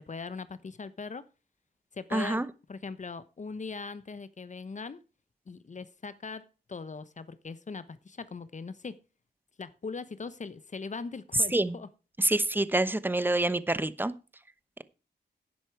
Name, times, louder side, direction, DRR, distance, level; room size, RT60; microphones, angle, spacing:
voice 1, 0.1-1.3 1.9-5.0 5.5-9.0 9.6-11.9, left 4 dB, 45° left, 1.0 m, -40 dB
voice 2, 2.1-2.5 11.5-11.8 12.2-14.1, right 2 dB, 10° right, 0.9 m, -27 dB
10.5 x 10.5 x 4.7 m
cardioid pair, 65°, 18 cm